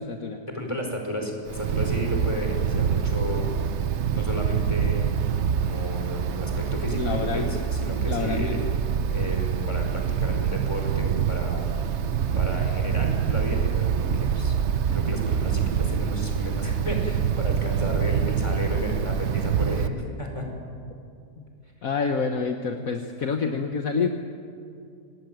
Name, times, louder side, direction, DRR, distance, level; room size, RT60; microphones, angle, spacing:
voice 1, 0.0-0.4 7.0-7.5 8.1-8.6 21.8-24.1, left 5 dB, 60° left, 5 dB, 1.6 m, -27 dB
voice 2, 0.5-3.5 4.1-5.1 5.6-8.6 9.1-11.7 12.3-14.6 14.9-20.4, equal, 15° left, 2 dB, 5.2 m, -32 dB
Wind, 1.5-19.9, right 7 dB, 55° right, 0.9 m, -25 dB
26.0 x 19.5 x 9.2 m, 2.5 s
omnidirectional pair, 1.7 m